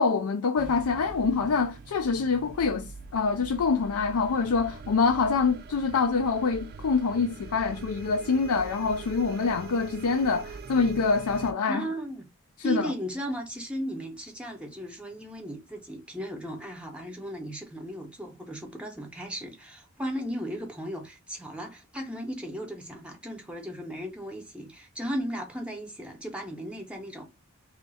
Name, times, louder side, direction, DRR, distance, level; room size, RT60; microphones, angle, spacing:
voice 1, 0.0-11.8 12.6-12.9, left 4 dB, 85° left, 0.4 m, -25 dB
sound 1, 0.6-11.5, right 4 dB, 45° right, 0.4 m, -43 dB
voice 2, 11.7-12.3 12.6-27.3, equal, 5° right, 0.7 m, -36 dB
3.0 x 2.3 x 4.0 m
head